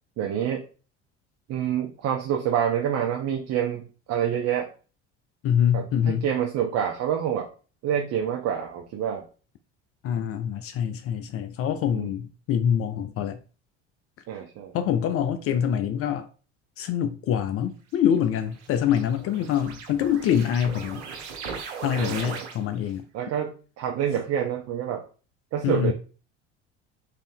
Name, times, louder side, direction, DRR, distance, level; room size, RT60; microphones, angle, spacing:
voice 1, 0.2-0.6 1.5-4.7 5.7-7.5 7.8-9.2 11.9-12.1 14.3-14.8 15.5-15.6 22.0-22.4 23.1-25.0 25.5-25.9, right 9 dB, 50° right, 0.7 m, -27 dB
voice 2, 5.4-6.3 10.0-13.4 14.7-16.3 16.8-21.0 21.8-23.0 25.6-25.9, left 9 dB, 45° left, 0.4 m, -25 dB
sound 1, 18.0-22.9, right 5 dB, 85° right, 0.8 m, -39 dB
3.2 x 2.7 x 3.5 m
hypercardioid pair, 70°, 33 cm